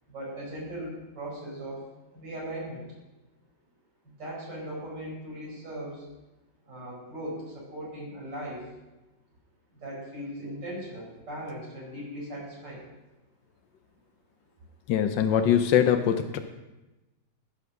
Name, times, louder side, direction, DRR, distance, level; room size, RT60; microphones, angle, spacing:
voice 1, 0.1-1.8 2.1-2.8 4.2-6.1 6.7-8.6 9.8-12.8, right 1 dB, 80° right, -5 dB, 5.6 m, -38 dB
voice 2, 14.9-16.4, left 9 dB, 90° left, 7 dB, 1.4 m, -22 dB
14.5 x 5.9 x 6.3 m, 1.1 s
omnidirectional pair, 1.9 m